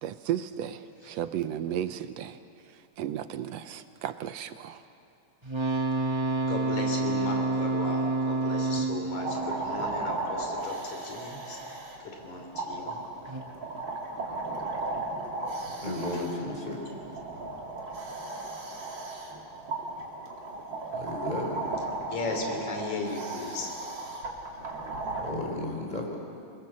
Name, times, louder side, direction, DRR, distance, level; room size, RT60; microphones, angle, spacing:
voice 1, 0.0-2.4 2.7-4.8, right 10 dB, 75° right, 10 dB, 1.8 m, -34 dB
sound 1, 5.4-10.5 13.3-13.4, right 2 dB, 15° right, 1.0 m, -29 dB
voice 2, 6.4-13.0 17.0-17.1 22.1-23.7, left 3 dB, 75° left, 3 dB, 4.6 m, -36 dB
sound 2, 9.1-25.3, right 2 dB, 40° right, 3.4 m, -36 dB
voice 3, 15.8-16.8 20.9-21.6 25.2-26.2, left 1 dB, 15° left, 0 dB, 4.2 m, -33 dB
26.5 x 20.5 x 7.4 m, 2.5 s
omnidirectional pair, 3.3 m